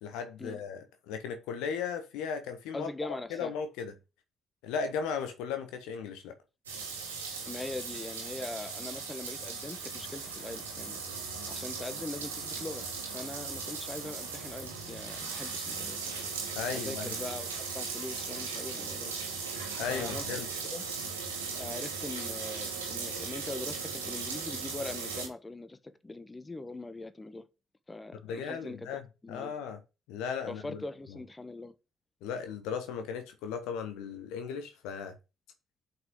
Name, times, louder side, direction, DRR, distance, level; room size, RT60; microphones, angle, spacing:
voice 1, 0.0-2.9 3.3-3.9 4.6-6.4 16.5-17.1 19.8-20.5 28.2-29.0 29.3-29.8 30.1-30.8 32.2-35.2, left 6 dB, 70° left, 0.9 m, -36 dB
voice 2, 2.7-3.5 7.5-11.0 11.5-16.3 16.8-19.2 19.9-20.3 20.7-20.8 21.5-25.8 26.0-27.4 27.9-29.5 30.4-31.7, left 2 dB, 20° left, 1.1 m, -42 dB
sound 1, 6.7-25.3, right 5 dB, 85° right, 1.7 m, -38 dB
7.5 x 5.6 x 3.8 m
figure-of-eight pair, 45°, 0 cm